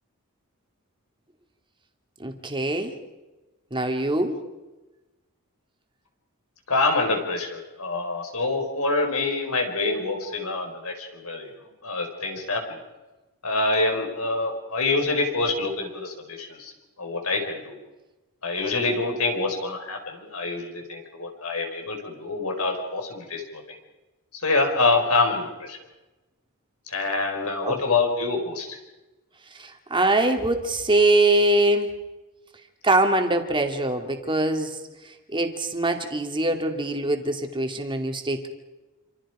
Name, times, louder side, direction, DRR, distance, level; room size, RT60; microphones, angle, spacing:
voice 1, 2.2-3.0 3.7-4.4 27.6-27.8 29.6-31.9 32.8-34.7 35.3-38.5, right 2 dB, 20° right, 4 dB, 2.5 m, -23 dB
voice 2, 6.7-11.5 11.8-12.8 13.4-16.7 17.0-17.7 18.4-23.8 24.4-25.8 26.9-28.8, left 3 dB, 75° left, 3 dB, 5.2 m, -26 dB
27.5 x 26.5 x 5.1 m, 1.1 s
head